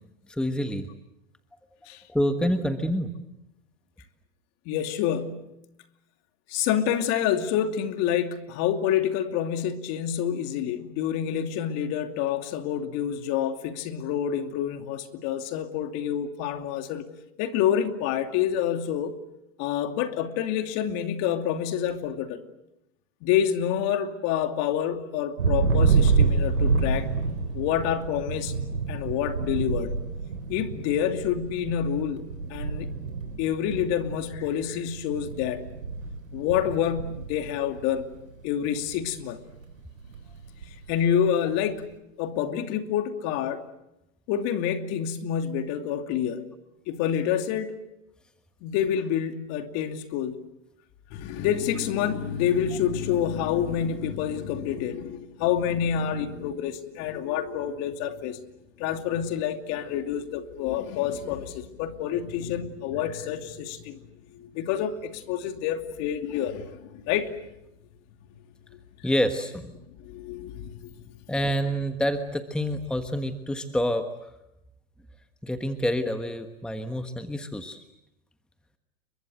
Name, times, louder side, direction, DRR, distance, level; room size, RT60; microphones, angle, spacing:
voice 1, 0.3-0.9 2.1-3.1 69.0-69.7 71.3-74.1 75.4-77.8, equal, ahead, 8 dB, 1.4 m, -27 dB
voice 2, 4.7-5.5 6.5-17.1 17.4-19.2 19.6-22.4 23.2-27.1 27.5-28.6 28.9-30.0 30.5-33.0 33.4-35.6 36.3-38.1 38.4-39.4 40.9-41.9 42.2-43.6 44.3-46.5 46.9-47.7 48.6-50.4 51.1-58.4 58.8-64.0 64.3-67.3 70.0-70.9, left 9 dB, 40° left, 7 dB, 2.7 m, -28 dB
Thunder, 25.4-38.3 38.6-39.2 39.5-41.0, right 4 dB, 90° right, 4.0 m, -28 dB
30.0 x 23.5 x 7.9 m, 0.88 s
hypercardioid pair, 115°, 38 cm